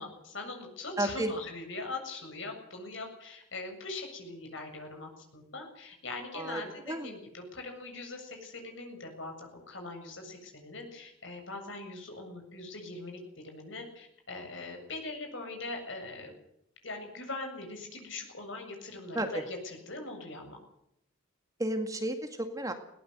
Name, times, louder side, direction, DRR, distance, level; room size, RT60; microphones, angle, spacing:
voice 1, 0.0-13.2 13.4-16.3 16.8-20.6, left 3 dB, 60° left, 3 dB, 7.5 m, -41 dB
voice 2, 1.0-1.3 6.3-6.6 6.9-7.1 19.2-19.4 21.6-22.7, right 1 dB, 15° right, 6 dB, 2.0 m, -32 dB
20.5 x 18.0 x 8.1 m, 0.78 s
head